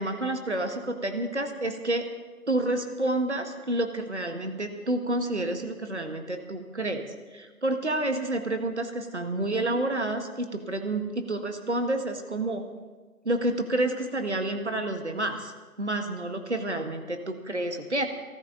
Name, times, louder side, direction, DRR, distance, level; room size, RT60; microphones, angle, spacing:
voice 1, 0.0-2.1 2.5-7.1 7.3-12.6 13.3-15.5 15.8-18.1, right 1 dB, 50° right, 6 dB, 1.7 m, -29 dB
22.5 x 14.0 x 3.9 m, 1.3 s
figure-of-eight pair, 175°, 45 cm